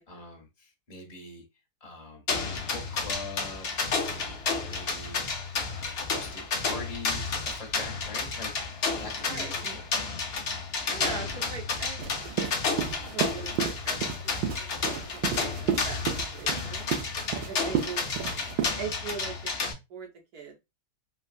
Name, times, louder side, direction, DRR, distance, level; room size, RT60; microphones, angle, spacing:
voice 1, 0.1-1.4 1.8-3.7 4.0-4.4 4.6-5.2 5.6-9.9 18.2-18.5, left 3 dB, 25° left, 0 dB, 0.9 m, -44 dB
sound 1, 2.3-19.7, left 4 dB, 75° left, 0.5 m, -31 dB
voice 2, 9.2-9.7 10.9-12.3 12.6-14.3 14.6-15.2 15.5-16.9 17.5-18.0 18.8-19.3 19.6-20.6, right 5 dB, 65° right, 0 dB, 1.3 m, -41 dB
sound 2, 12.0-18.7, right 8 dB, 90° right, 1.3 m, -32 dB
3.4 x 2.3 x 2.3 m, 0.23 s
omnidirectional pair, 1.9 m